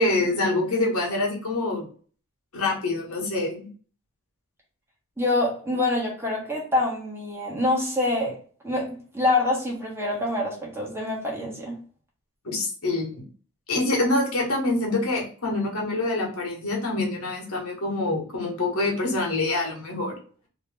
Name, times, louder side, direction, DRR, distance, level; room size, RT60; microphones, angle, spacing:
voice 1, 0.0-1.9 2.5-3.7 12.4-13.2 13.7-20.1, left 2 dB, 70° left, -1 dB, 1.2 m, -25 dB
voice 2, 5.2-8.4 8.6-11.7, left 2 dB, 10° right, -3 dB, 1.1 m, -26 dB
2.9 x 2.7 x 3.3 m, 0.43 s
head